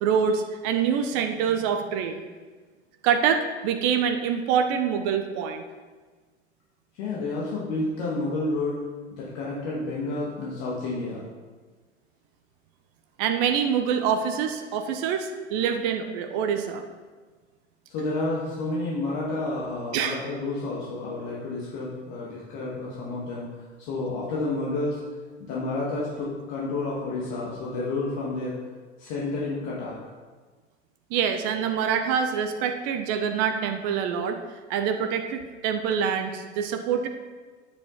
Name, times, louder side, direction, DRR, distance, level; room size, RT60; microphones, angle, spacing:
voice 1, 0.0-2.2 3.0-5.6 13.2-16.8 19.9-20.2 31.1-34.4 34.7-37.1, right 7 dB, 45° right, 7 dB, 1.0 m, -25 dB
voice 2, 6.9-8.8 9.1-11.2 17.9-23.4 23.8-25.0 25.4-28.6 29.0-30.0, left 2 dB, 45° left, -5 dB, 2.5 m, -30 dB
9.8 x 9.0 x 4.3 m, 1.4 s
figure-of-eight pair, 85°, 34 cm